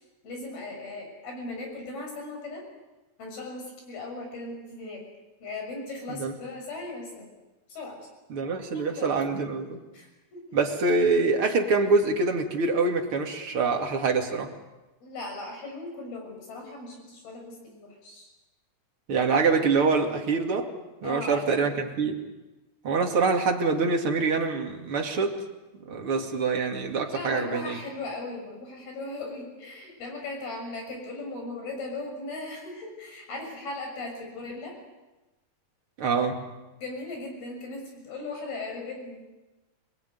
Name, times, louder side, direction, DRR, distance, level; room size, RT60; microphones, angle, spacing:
voice 1, 0.2-2.7 3.2-5.0 5.4-7.3 7.7-8.0 8.7-9.1 9.9-10.4 15.0-18.3 21.0-21.8 27.0-34.7 36.8-39.2, left 2 dB, 80° left, 2 dB, 8.4 m, -38 dB
voice 2, 8.3-9.8 10.5-14.5 19.1-20.7 21.0-22.2 22.8-25.3 25.8-27.8 36.0-36.4, right 4 dB, 40° right, 2 dB, 2.9 m, -25 dB
27.0 x 20.5 x 9.4 m, 1.1 s
omnidirectional pair, 4.3 m